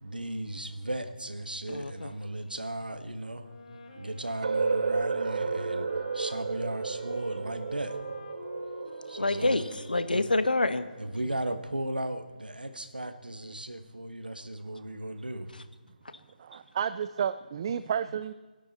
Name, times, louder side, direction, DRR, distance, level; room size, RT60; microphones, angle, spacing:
voice 1, 0.0-3.5 4.0-5.9 6.1-8.0 9.1-9.7 10.1-10.2 11.0-15.5 16.5-16.6, right 1 dB, 85° right, 10 dB, 1.6 m, -36 dB
voice 2, 1.7-2.1 9.2-10.8, left 2 dB, 80° left, 12 dB, 1.2 m, -27 dB
Wind instrument woodwind instrument, 3.3-11.7, left 3 dB, 55° left, 2.7 m, -48 dB
sound 1, 4.4-10.3, right 4 dB, 55° right, 0.9 m, -32 dB
voice 3, 16.4-18.3, right 8 dB, 35° right, 14 dB, 0.4 m, -31 dB
26.5 x 11.0 x 4.2 m, 1.3 s
figure-of-eight pair, 150°, 5 cm